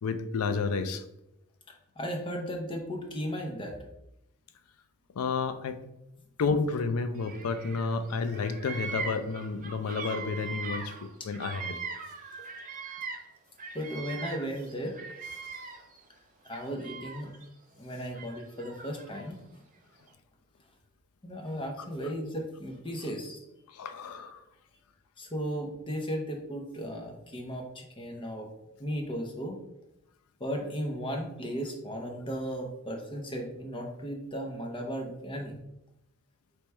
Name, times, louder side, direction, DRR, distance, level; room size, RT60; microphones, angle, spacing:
voice 1, 0.0-1.0 5.2-5.8 6.4-10.9 11.3-11.8 21.8-21.9 23.7-24.4, left 4 dB, 75° left, 10 dB, 0.4 m, -31 dB
voice 2, 2.0-3.7 13.7-15.0 16.4-17.3 17.7-19.4 21.2-23.4 25.2-28.5 28.8-29.6 30.4-35.6, equal, 20° left, 1 dB, 0.7 m, -35 dB
Bird vocalization bird call bird song, 7.2-8.0 8.2-13.3 13.6-16.0 16.5-17.4 18.2-19.2, right 5 dB, 35° right, 0.4 m, -40 dB
3.4 x 3.0 x 4.3 m, 0.86 s
head